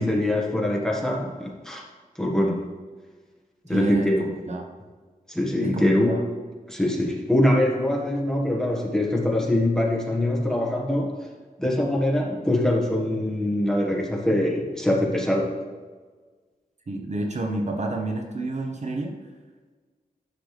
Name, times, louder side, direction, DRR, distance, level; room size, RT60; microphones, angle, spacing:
voice 1, 0.0-1.8 2.1-2.7 3.6-4.3 5.3-6.2 6.7-11.1 11.6-15.6, left 1 dB, 5° left, -1 dB, 1.5 m, -23 dB
voice 2, 3.7-4.1 4.5-4.6 5.6-6.2 16.9-19.1, right 2 dB, 50° right, 3 dB, 0.9 m, -29 dB
10.0 x 6.7 x 3.3 m, 1.4 s
wide cardioid pair, 115°, 15 cm